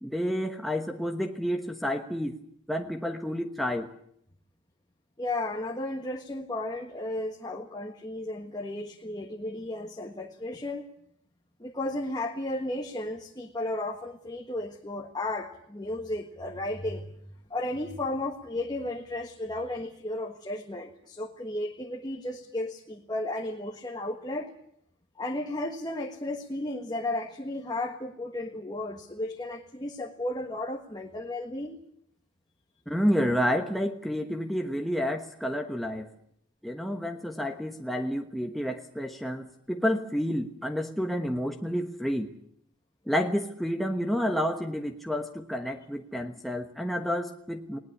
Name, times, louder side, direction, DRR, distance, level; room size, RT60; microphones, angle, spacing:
voice 1, 0.0-2.4 2.7-3.9 32.9-36.1 36.6-42.3 43.1-47.8, equal, ahead, 3 dB, 1.2 m, -30 dB
voice 2, 5.2-10.8 11.6-17.1 17.5-24.5 25.2-31.8, left 1 dB, 20° left, 3 dB, 1.5 m, -34 dB
20.0 x 19.0 x 9.8 m, 0.70 s
head